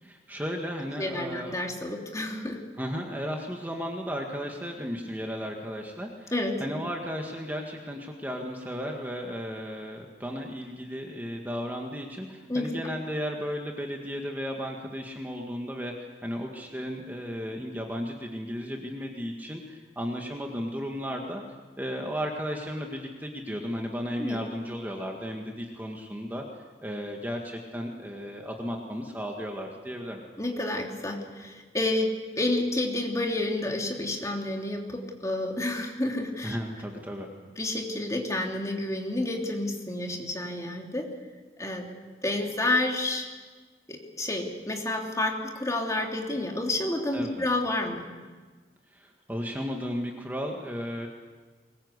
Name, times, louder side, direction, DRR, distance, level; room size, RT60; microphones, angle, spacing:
voice 1, 0.0-1.6 2.8-6.3 6.6-21.4 21.8-26.4 26.8-30.2 36.4-37.3 47.1-47.5 48.9-51.1, equal, 10° right, 1 dB, 1.9 m, -34 dB
voice 2, 1.0-2.6 6.3-6.6 12.5-12.7 24.2-24.4 30.4-32.1 32.4-36.6 37.6-41.1 41.6-41.9 42.2-43.3 43.9-48.0, left 2 dB, 20° left, 1 dB, 3.0 m, -29 dB
23.5 x 21.0 x 8.2 m, 1.4 s
head